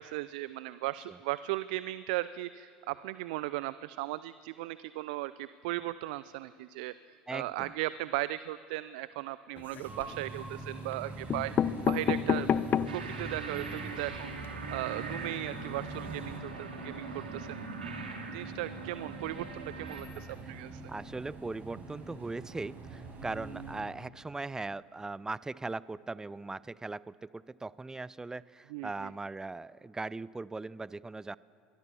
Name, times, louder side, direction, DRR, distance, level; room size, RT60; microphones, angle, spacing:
voice 1, 0.0-12.5 12.9-17.6 18.3-20.8 28.7-29.1, right 17 dB, 70° right, 16 dB, 0.5 m, -37 dB
voice 2, 7.3-7.7 9.9-10.3 16.5-16.8 20.4-20.5 20.9-31.4, right 3 dB, 15° right, 20 dB, 0.6 m, -40 dB
sound 1, 9.6-10.2 10.9-11.0 11.3-13.1 13.6-13.7 13.9-14.0 14.3-14.5, left 8 dB, 40° left, 0.9 m, -29 dB
sound 2, 9.8-23.8, right 3 dB, 40° right, 7.1 m, -45 dB
sound 3, 12.9-20.0, right 3 dB, 85° right, 3.1 m, -42 dB
25.0 x 22.0 x 7.1 m, 2.5 s
hypercardioid pair, 70°, 5 cm